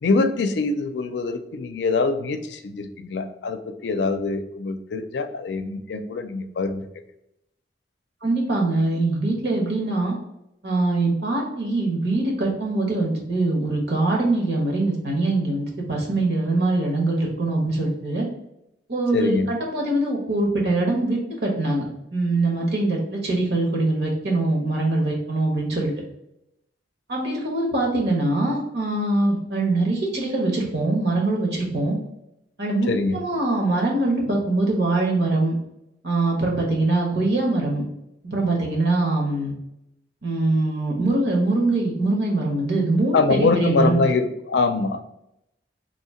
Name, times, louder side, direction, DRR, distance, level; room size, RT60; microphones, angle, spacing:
voice 1, 0.0-6.9 19.1-19.5 32.9-33.2 43.1-45.0, left 3 dB, 80° left, 8 dB, 0.4 m, -24 dB
voice 2, 8.2-10.2 10.6-18.3 18.9-21.8 22.1-25.9 27.1-32.0 32.6-35.5 36.0-37.8 38.2-39.5 40.2-44.0, right 2 dB, 70° right, -1 dB, 1.2 m, -23 dB
3.1 x 2.7 x 4.3 m, 0.83 s
head